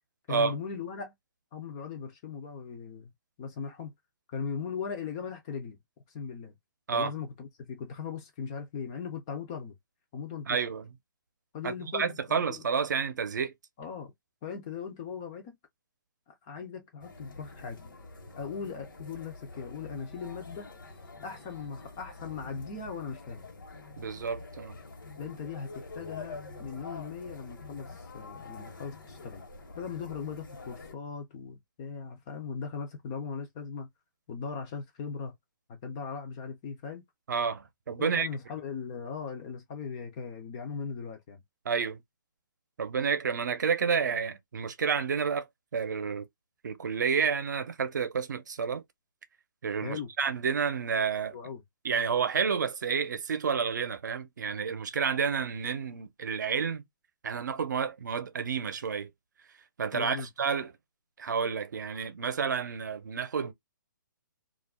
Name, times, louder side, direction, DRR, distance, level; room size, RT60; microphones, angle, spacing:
voice 1, 0.3-1.1 1.5-3.1 3.4-3.9 4.3-5.8 6.1-6.5 6.9-9.7 10.1-10.6 11.5-12.6 13.8-14.1 14.4-15.6 16.3-17.8 18.4-20.7 21.2-23.5 25.1-29.4 29.7-33.9 34.3-35.3 35.7-37.0 38.0-41.4 49.8-50.1 51.3-51.6 59.9-60.3, left 6 dB, 15° left, 0.3 m, -39 dB
voice 2, 10.5-10.8 11.6-13.5 24.0-24.8 37.3-38.3 41.6-42.0 42.8-45.5 45.7-46.3 46.6-48.8 49.6-51.4 51.8-56.8 57.2-59.1 59.8-60.7 61.2-63.5, right 6 dB, 60° right, 0.6 m, -30 dB
sound 1, 17.0-30.9, left 3 dB, 80° left, 1.0 m, -46 dB
2.4 x 2.2 x 3.4 m
hypercardioid pair, 175°, 11 cm